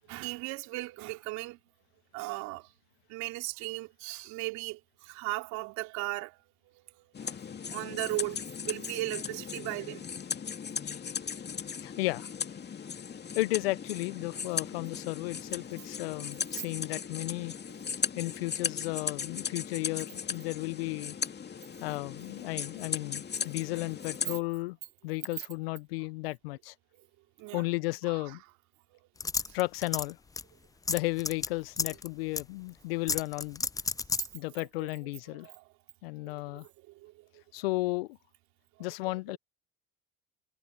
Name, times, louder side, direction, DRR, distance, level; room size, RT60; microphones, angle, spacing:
voice 1, 0.1-1.6 2.1-2.7 3.1-6.4 7.2-7.4 7.7-10.0 27.4-27.6 28.1-28.4 29.5-29.6 35.3-35.6 36.3-37.4 38.8-39.1, right 21 dB, 70° right, 2.9 m, -37 dB
sound 1, 7.1-24.4, left 7 dB, 35° left, 2.3 m, -37 dB
voice 2, 11.8-12.3 13.4-17.5 18.2-21.2 21.8-24.8 25.0-26.7 27.5-28.4 29.5-30.2 30.9-33.7 34.3-35.5 36.0-36.7 37.5-38.2 38.8-39.4, left 22 dB, 85° left, 0.6 m, -34 dB
sound 2, 29.2-30.1 30.4-30.5 30.9-31.5 31.8-32.1 32.4-32.5 33.1-34.3, left 4 dB, 10° left, 0.4 m, -31 dB
hypercardioid pair, 70°, 29 cm